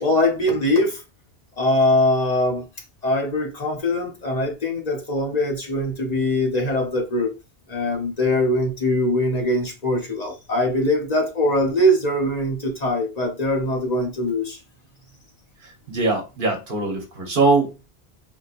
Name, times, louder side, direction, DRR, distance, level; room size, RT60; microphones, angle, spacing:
voice 1, 0.0-1.0 1.6-2.7 3.0-7.3 7.7-14.6, left 1 dB, 45° left, 0.9 m, -22 dB
voice 2, 15.6-17.9, right 3 dB, 55° right, 1.1 m, -22 dB
3.9 x 2.8 x 2.4 m
omnidirectional pair, 1.1 m